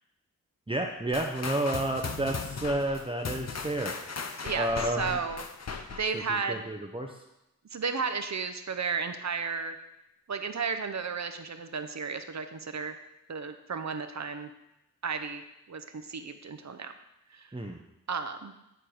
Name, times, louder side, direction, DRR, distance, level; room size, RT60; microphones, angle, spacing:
voice 1, 0.7-3.9 4.5-5.2 6.1-6.2 6.5-7.2 17.5-17.8, right 1 dB, 15° right, 2 dB, 0.7 m, -31 dB
sound 1, 1.1-6.2, left 5 dB, 50° left, 0.8 m, -37 dB
voice 2, 4.4-5.4 5.9-6.7 7.7-9.8 10.3-12.9 13.3-14.5 15.0-15.4 15.7-16.9 17.3-17.5 18.1-18.5, right 5 dB, 55° right, 8 dB, 0.8 m, -33 dB
10.0 x 4.4 x 5.0 m, 0.88 s
cardioid pair, 55°, 33 cm